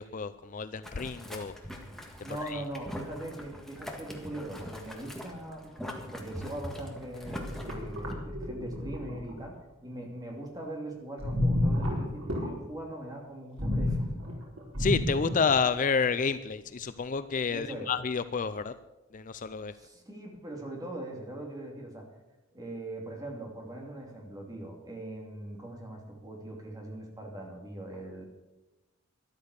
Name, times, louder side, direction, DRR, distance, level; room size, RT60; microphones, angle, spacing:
voice 1, 0.0-1.5 2.4-2.6 14.8-18.7 19.1-19.7, left 5 dB, 40° left, 13 dB, 0.5 m, -29 dB
Boiling, 0.8-8.1, equal, ahead, 1.8 m, -43 dB
voice 2, 2.2-5.7 6.1-14.1 17.5-17.9 19.7-22.1 22.5-28.2, right 1 dB, 20° right, 1 dB, 3.0 m, -41 dB
sound 1, 7.2-9.5 11.2-12.5 13.6-15.6, left 1 dB, 85° right, 4.5 m, -30 dB
13.0 x 11.5 x 6.7 m, 1.0 s
head